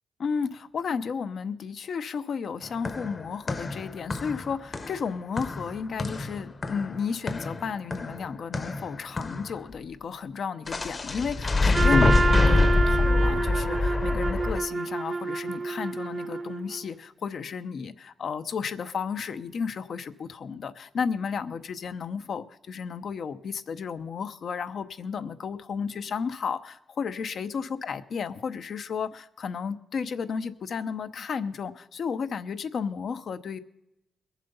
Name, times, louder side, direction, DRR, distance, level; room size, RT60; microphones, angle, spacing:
voice 1, 0.2-33.6, left 6 dB, 70° left, 10 dB, 0.8 m, -33 dB
sound 1, 2.6-9.6 10.7-14.6, left 3 dB, 40° left, 1.0 m, -26 dB
Trumpet, 11.7-16.8, right 4 dB, 45° right, 0.9 m, -28 dB
22.0 x 7.4 x 5.5 m, 0.88 s
cardioid pair, 75°, 0 cm